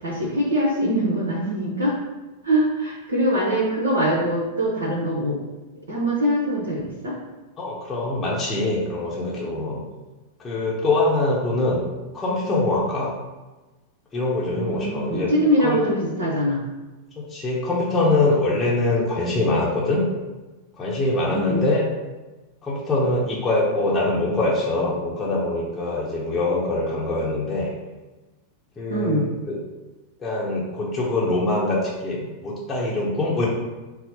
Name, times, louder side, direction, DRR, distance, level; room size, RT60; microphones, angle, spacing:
voice 1, 0.0-2.0 2.4-5.4 5.9-7.2 14.6-16.6 21.3-21.7 28.9-29.3, equal, 65° right, -5 dB, 0.8 m, -23 dB
voice 2, 7.6-9.8 10.4-11.8 12.1-13.1 14.1-15.3 15.6-15.8 17.2-20.0 20.8-21.8 22.6-27.7 28.8-29.2 29.5-29.6 30.2-33.5, left 2 dB, 20° left, -5 dB, 0.8 m, -23 dB
4.2 x 2.0 x 4.1 m, 1.2 s
figure-of-eight pair, 90°, 0 cm